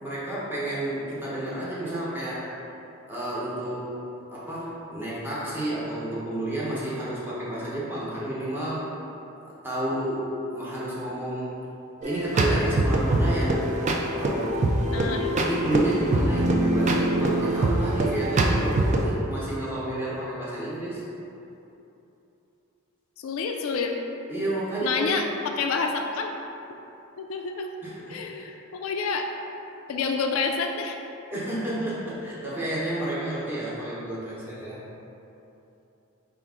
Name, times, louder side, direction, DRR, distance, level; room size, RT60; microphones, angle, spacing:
voice 1, 0.0-2.5 3.1-3.9 4.3-8.9 9.6-11.6 12.0-13.6 14.0-14.7 15.2-21.0 24.3-25.2 27.8-28.5 31.3-34.8, right 1 dB, 10° right, -8 dB, 0.9 m, -31 dB
sound 1, 12.0-19.0, right 2 dB, 35° right, 0.3 m, -24 dB
voice 2, 14.9-15.3 23.2-24.0 24.8-26.3 27.2-27.7 28.1-29.3 29.9-31.0, left 4 dB, 70° left, 3 dB, 0.3 m, -28 dB
4.6 x 2.4 x 3.6 m, 2.9 s
head